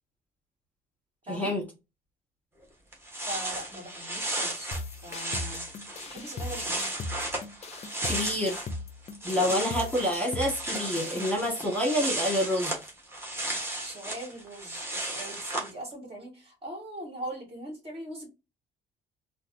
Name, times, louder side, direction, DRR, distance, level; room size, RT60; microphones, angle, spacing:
voice 1, 1.3-1.6 8.1-8.7 9.2-12.7, left 1 dB, 10° left, 1.6 m, -27 dB
sound 1, 2.6-2.7 2.9-8.8 9.0-15.7, right 1 dB, 15° right, 1.3 m, -35 dB
voice 2, 3.3-5.6 6.1-6.9 13.8-18.3, right 1 dB, 35° right, 2.0 m, -41 dB
sound 2, 4.7-11.3, left 3 dB, 40° left, 0.5 m, -39 dB
3.9 x 2.4 x 2.7 m
cardioid pair, 110°, 17 cm